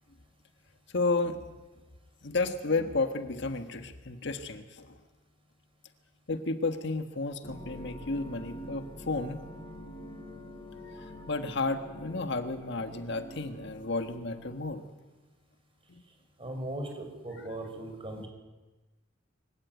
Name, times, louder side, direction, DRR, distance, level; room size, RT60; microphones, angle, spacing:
voice 1, 0.9-1.4 2.2-4.9 6.3-9.4 10.9-14.8 15.9-16.0, left 3 dB, 65° left, 7 dB, 1.5 m, -32 dB
sound 1, 7.4-14.8, equal, 25° left, 5.6 m, -46 dB
voice 2, 16.4-18.3, right 1 dB, 30° right, 3 dB, 5.9 m, -38 dB
25.0 x 16.5 x 9.3 m, 1.2 s
head